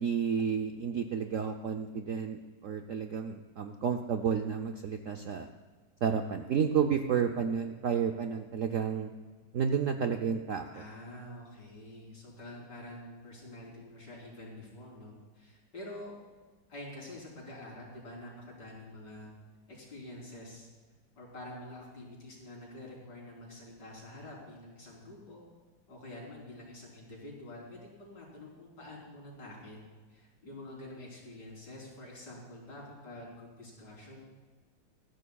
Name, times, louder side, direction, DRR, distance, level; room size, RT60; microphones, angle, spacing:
voice 1, 0.0-5.5 6.0-9.1 9.5-10.8, right 7 dB, 65° right, 5 dB, 0.8 m, -31 dB
voice 2, 10.7-16.2 16.7-19.3 19.7-20.7 21.2-25.4 25.9-34.2, left 1 dB, 65° left, -4 dB, 4.3 m, -47 dB
21.0 x 14.5 x 2.3 m, 1.4 s
omnidirectional pair, 2.0 m